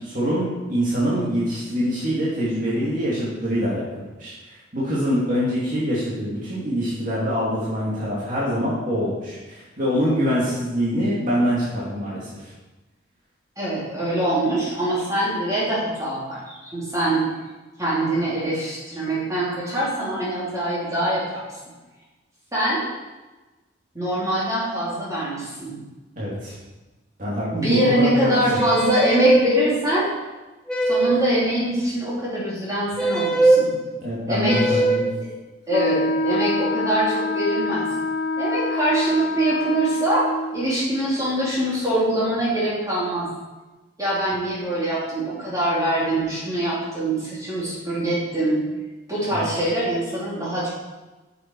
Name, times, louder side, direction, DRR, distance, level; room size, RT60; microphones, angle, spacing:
voice 1, 0.0-4.3 4.7-12.3 26.2-26.5 27.2-28.3 34.0-35.1 49.4-49.5, equal, 40° right, -8 dB, 2.4 m, -24 dB
voice 2, 13.6-17.3 17.8-21.5 22.5-22.8 23.9-25.8 27.5-30.1 30.8-33.7 34.3-34.8 35.2-35.3 35.7-37.9 38.4-40.3 40.5-43.3 44.0-48.6 49.1-50.7, right 1 dB, 15° right, -8 dB, 3.1 m, -23 dB
sound 1, 28.5-29.5 30.7-31.3 33.0-33.6 34.5-35.1, right 2 dB, 5° left, 1.1 m, -19 dB
Wind instrument woodwind instrument, 35.7-40.6, left 2 dB, 55° left, 0.8 m, -25 dB
9.1 x 7.1 x 4.7 m, 1.2 s
head